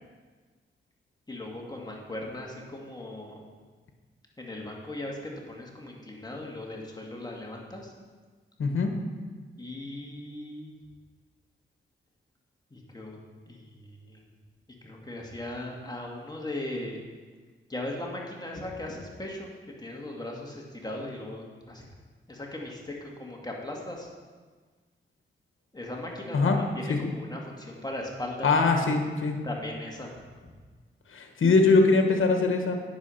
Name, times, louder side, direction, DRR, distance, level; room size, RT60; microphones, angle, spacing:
voice 1, 1.3-3.4 4.4-7.9 9.6-10.8 12.7-13.2 13.5-14.2 14.8-17.0 17.7-19.5 19.8-21.9 22.3-24.1 25.7-28.5 29.4-30.3, left 1 dB, 20° left, -1 dB, 1.9 m, -38 dB
voice 2, 8.6-8.9 26.3-26.6 26.9-27.1 28.4-29.4 31.1-32.7, left 3 dB, 75° left, 4 dB, 1.3 m, -22 dB
9.6 x 6.6 x 5.6 m, 1.4 s
cardioid pair, 65°, 21 cm